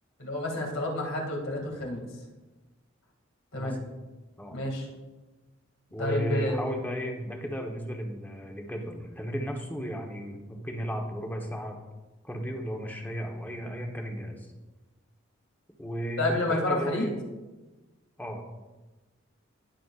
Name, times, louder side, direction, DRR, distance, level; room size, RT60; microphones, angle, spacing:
voice 1, 0.2-2.0 3.5-3.8 4.5-4.9 6.0-6.7 16.2-17.1, left 1 dB, 75° left, -1 dB, 2.5 m, -29 dB
voice 2, 5.9-11.8 12.2-14.5 15.8-17.1 18.2-18.4, equal, 10° left, 1 dB, 1.1 m, -34 dB
19.5 x 7.0 x 2.5 m, 1.2 s
head